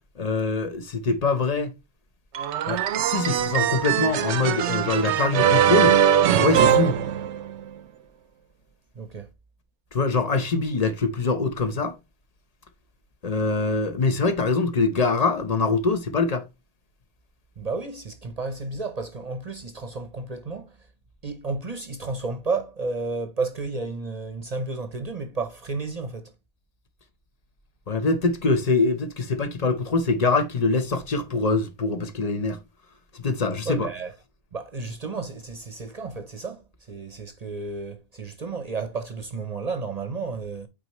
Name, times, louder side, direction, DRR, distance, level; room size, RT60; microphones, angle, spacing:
voice 1, 0.2-1.7 2.7-6.0 6.4-7.0 9.9-11.9 13.2-16.4 27.9-32.6 33.1-33.9, left 3 dB, 40° left, 0.9 m, -24 dB
sound 1, 2.3-7.7, right 9 dB, 85° right, 0.9 m, -21 dB
voice 2, 8.9-9.3 17.6-20.9 21.2-26.3 33.6-34.1 34.5-40.7, right 3 dB, 40° right, 0.8 m, -32 dB
8.6 x 4.1 x 3.0 m
omnidirectional pair, 1.1 m